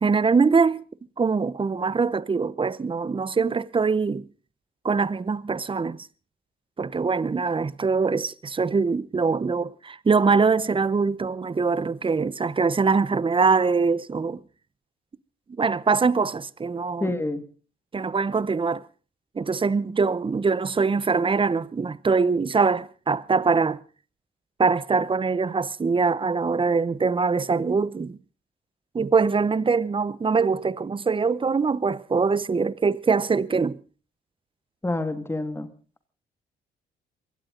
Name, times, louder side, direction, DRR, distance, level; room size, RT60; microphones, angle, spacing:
voice 1, 0.0-0.8 1.2-4.3 4.8-6.1 6.8-14.4 15.6-17.1 17.9-18.8 19.3-23.8 24.6-28.2 28.9-33.8, right 4 dB, 25° right, 0.8 m, -23 dB
voice 2, 17.0-17.4 34.8-35.7, left 2 dB, 10° left, 2.2 m, -27 dB
22.0 x 16.5 x 3.9 m
cardioid pair, 90°, 20 cm